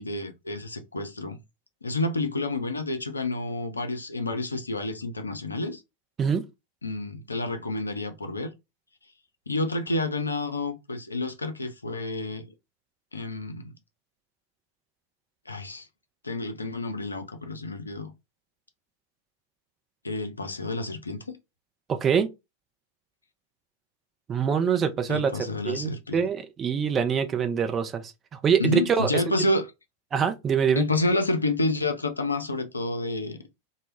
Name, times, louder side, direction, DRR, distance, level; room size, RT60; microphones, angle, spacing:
voice 1, 0.0-1.4 1.8-5.8 6.8-8.5 9.5-12.5 13.1-13.7 15.5-15.9 16.2-18.1 20.0-21.4 25.1-26.3 28.6-29.6 30.8-33.4, left 2 dB, 80° left, 0.4 m, -29 dB
voice 2, 21.9-22.3 24.3-29.2 30.1-30.9, right 7 dB, 25° right, 0.4 m, -25 dB
2.0 x 2.0 x 3.1 m
figure-of-eight pair, 90°, 0 cm